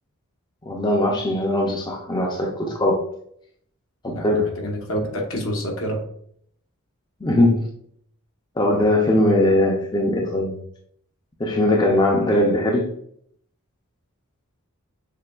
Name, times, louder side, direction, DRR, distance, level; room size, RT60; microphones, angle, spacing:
voice 1, 0.6-3.1 4.0-4.5 7.2-7.7 8.6-10.6 11.4-12.9, left 1 dB, 20° left, 0 dB, 0.5 m, -20 dB
voice 2, 4.1-6.1, equal, 65° left, 1 dB, 0.9 m, -28 dB
6.5 x 2.2 x 2.3 m, 0.67 s
head